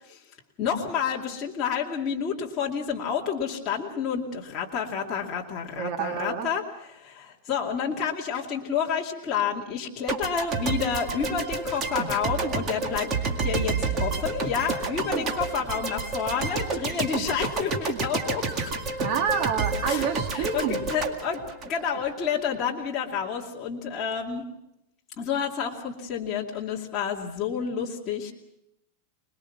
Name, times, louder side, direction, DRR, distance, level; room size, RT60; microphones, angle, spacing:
voice 1, 0.6-6.6 6.9-13.1 13.4-13.7 14.0-18.7 19.9-20.1 20.3-24.4 25.2-28.3, left 7 dB, 25° left, -3 dB, 2.5 m, -29 dB
voice 2, 5.8-6.5 19.0-20.9, right 7 dB, 45° right, 5 dB, 2.1 m, -28 dB
sound 1, 10.1-22.3, right 4 dB, 25° right, 2.0 m, -29 dB
26.5 x 21.0 x 6.0 m, 0.82 s
supercardioid pair, 165°, 0 cm